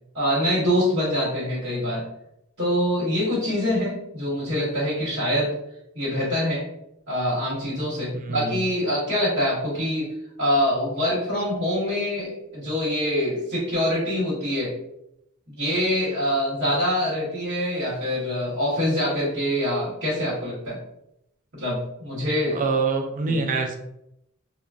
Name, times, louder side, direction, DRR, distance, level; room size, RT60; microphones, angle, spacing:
voice 1, 0.1-2.1 2.6-5.5 5.9-6.6 7.1-10.1 10.4-14.7 15.6-20.8 21.5-22.6 23.3-23.4, equal, 55° right, -9 dB, 1.2 m, -25 dB
voice 2, 8.3-8.6 22.5-23.8, right 4 dB, 35° right, 4 dB, 0.4 m, -25 dB
3.7 x 2.0 x 2.4 m, 0.79 s
head